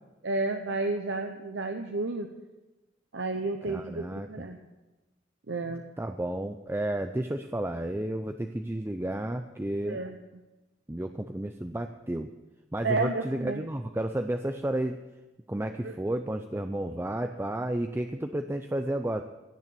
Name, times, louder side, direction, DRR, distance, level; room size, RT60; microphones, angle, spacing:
voice 1, 0.2-2.3 3.1-4.6 5.5-5.8 9.9-10.2 12.8-13.6 15.8-15.9, right 3 dB, 80° right, 5 dB, 0.9 m, -31 dB
voice 2, 3.6-4.5 6.0-10.0 10.9-12.3 12.7-15.0 15.5-19.3, right 1 dB, 15° right, 7 dB, 0.5 m, -32 dB
16.5 x 6.9 x 8.3 m, 1.1 s
head